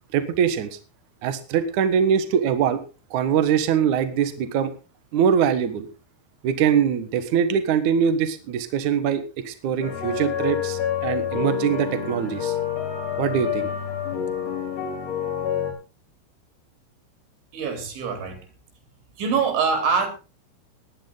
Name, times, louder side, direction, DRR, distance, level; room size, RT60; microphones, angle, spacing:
voice 1, 0.1-0.8 1.2-2.8 3.1-4.7 5.1-5.9 6.4-12.6 13.2-13.7, right 8 dB, 85° right, 1.7 m, -22 dB
sound 1, 9.8-15.7, left 8 dB, 65° left, 7.4 m, -28 dB
voice 2, 17.5-18.4 19.2-20.1, right 5 dB, 65° right, 5.7 m, -24 dB
17.5 x 11.0 x 3.9 m
omnidirectional pair, 5.8 m